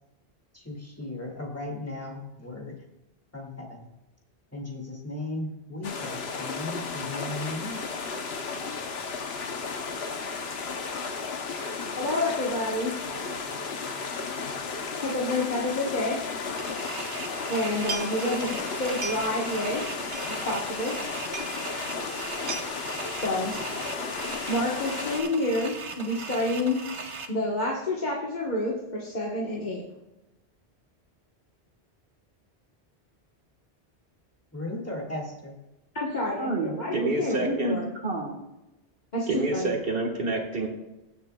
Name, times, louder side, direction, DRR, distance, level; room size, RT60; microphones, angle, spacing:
voice 1, 0.5-2.8 3.3-3.9 4.5-7.8 34.5-35.6, left 2 dB, 15° left, -1 dB, 2.1 m, -36 dB
sound 1, 5.8-25.2, left 4 dB, 65° left, 1.2 m, -34 dB
voice 2, 12.0-12.9 14.9-16.2 17.5-19.8 20.4-20.9 23.2-23.5 24.5-26.8 27.3-29.8 35.9-37.8 39.1-39.7, left 1 dB, 40° left, -4 dB, 1.4 m, -28 dB
sound 2, 16.6-27.3, right 3 dB, 30° right, 0.8 m, -39 dB
sound 3, 17.9-18.5 18.8-19.5 19.8-19.9 20.1-20.7 21.0-21.1 21.3-21.6 22.0-22.1 22.2-22.7 23.5-23.8 24.1-24.5 24.8-24.9, right 4 dB, 85° right, 1.2 m, -37 dB
voice 3, 36.4-38.4 39.3-40.7, right 3 dB, 55° right, 2 dB, 1.8 m, -28 dB
20.0 x 6.8 x 2.3 m, 0.98 s
omnidirectional pair, 1.1 m